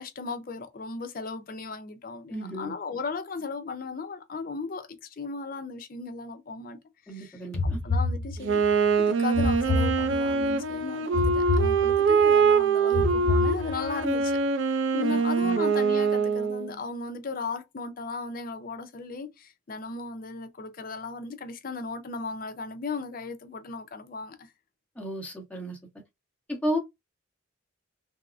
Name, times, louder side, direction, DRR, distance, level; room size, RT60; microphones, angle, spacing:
voice 1, 0.0-6.8 7.1-8.6 9.0-14.4 14.7-24.5, left 4 dB, 45° left, 0.5 m, -36 dB
voice 2, 2.3-2.7 7.1-7.8 15.1-15.6 25.0-25.8 26.5-26.8, equal, 5° left, 0.9 m, -33 dB
sound 1, 7.5-8.7 9.3-10.5 11.1-12.3 12.9-14.1, left 3 dB, 90° left, 0.6 m, -28 dB
Wind instrument woodwind instrument, 8.4-16.7, right 5 dB, 70° right, 0.4 m, -24 dB
3.5 x 2.0 x 2.5 m
head